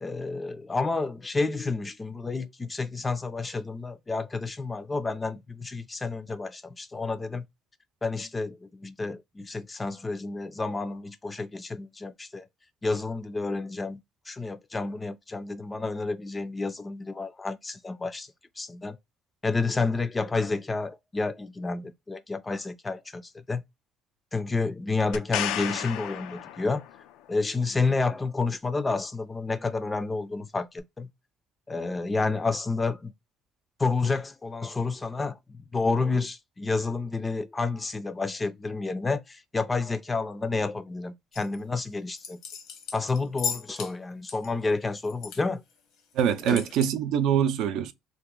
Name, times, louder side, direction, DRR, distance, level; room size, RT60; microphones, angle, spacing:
voice 1, 0.0-7.5 8.0-12.4 12.8-18.3 18.6-19.0 19.4-23.6 24.3-26.8 27.3-31.1 31.7-33.1 33.8-42.4 42.9-45.6 46.5-46.6, left 3 dB, 20° left, 0.4 m, -30 dB
sound 1, 25.1-27.1 30.8-30.9, left 11 dB, 90° left, 0.3 m, -33 dB
sound 2, 41.3-41.6 42.1-43.9 44.2-45.4 45.7-45.8 46.1-46.9, left 7 dB, 75° left, 0.9 m, -36 dB
voice 2, 46.1-47.9, right 9 dB, 75° right, 0.5 m, -24 dB
2.9 x 2.4 x 3.6 m
cardioid pair, 125°, 0 cm